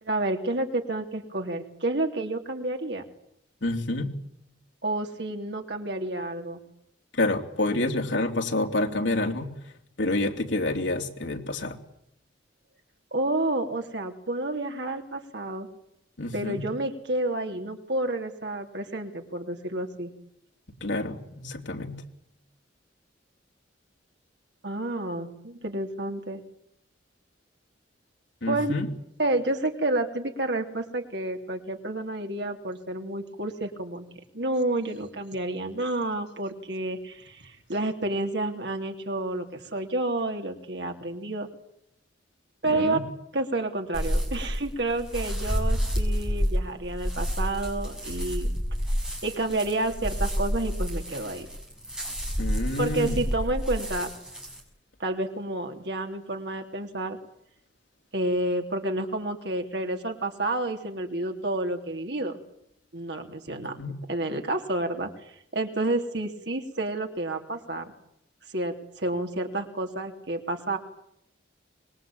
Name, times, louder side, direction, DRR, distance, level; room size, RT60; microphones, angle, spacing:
voice 1, 0.0-3.0 4.8-6.6 13.1-15.7 16.3-20.1 24.6-26.4 28.5-28.7 29.2-34.1 34.3-41.5 42.6-43.0 43.3-48.5 49.2-51.5 52.8-54.1 55.0-57.2 58.1-62.4 62.9-63.8 64.1-65.1 65.5-67.9 68.5-70.8, right 2 dB, 65° right, 4 dB, 3.4 m, -30 dB
voice 2, 3.6-4.1 7.1-9.5 10.0-11.8 16.2-16.6 20.8-22.0 28.4-28.9 42.6-43.0 52.4-53.2 63.5-64.0, left 2 dB, 80° left, 4 dB, 3.4 m, -28 dB
sound 1, 43.9-54.6, equal, 5° right, 6.5 m, -29 dB
25.5 x 21.5 x 8.9 m, 0.78 s
head